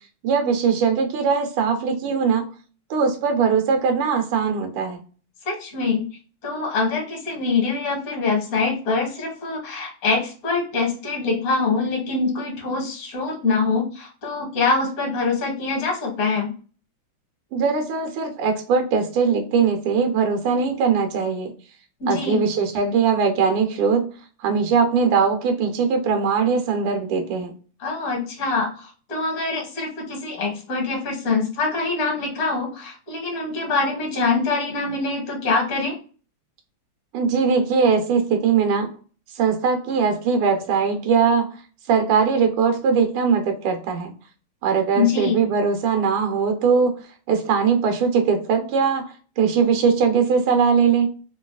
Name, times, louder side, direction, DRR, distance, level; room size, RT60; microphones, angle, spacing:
voice 1, 0.2-2.4 2.9-5.0 17.5-21.5 22.1-24.1 24.4-27.5 37.1-38.9 39.4-41.5 41.9-44.1 44.6-47.0 47.3-49.0 49.4-51.1, right 5 dB, 90° right, 4 dB, 1.7 m, -20 dB
voice 2, 5.4-6.0 6.4-16.5 22.0-22.5 27.8-36.0 44.9-45.4, left 4 dB, 50° left, 1 dB, 1.4 m, -24 dB
3.7 x 2.3 x 2.3 m, 0.38 s
omnidirectional pair, 2.3 m